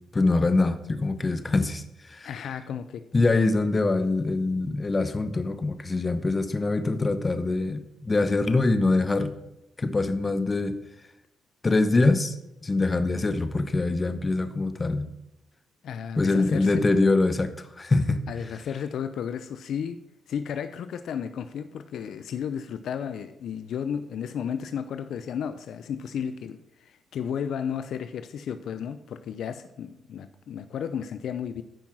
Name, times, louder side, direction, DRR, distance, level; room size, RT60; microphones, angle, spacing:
voice 1, 0.1-1.8 2.1-2.3 3.1-9.3 9.8-10.8 11.6-12.3 12.6-15.1 16.2-18.2, left 3 dB, 25° left, 0.8 m, -24 dB
voice 2, 2.2-3.3 15.8-16.9 18.3-20.0 20.3-31.6, left 8 dB, 70° left, 0.5 m, -33 dB
9.1 x 5.5 x 6.1 m
cardioid pair, 90°, 0 cm